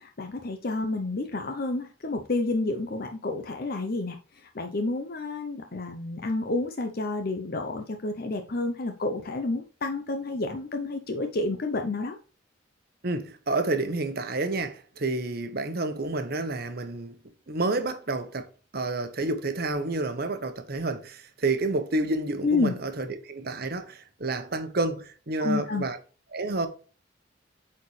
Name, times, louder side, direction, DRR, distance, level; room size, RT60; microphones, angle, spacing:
voice 1, 0.0-4.2 4.5-12.2 22.4-22.7 25.4-25.8, left 3 dB, 50° left, 0.7 m, -29 dB
voice 2, 13.0-17.2 17.5-18.5 18.7-26.0 26.3-26.7, right 2 dB, 50° right, 1.0 m, -29 dB
8.3 x 4.3 x 3.2 m
head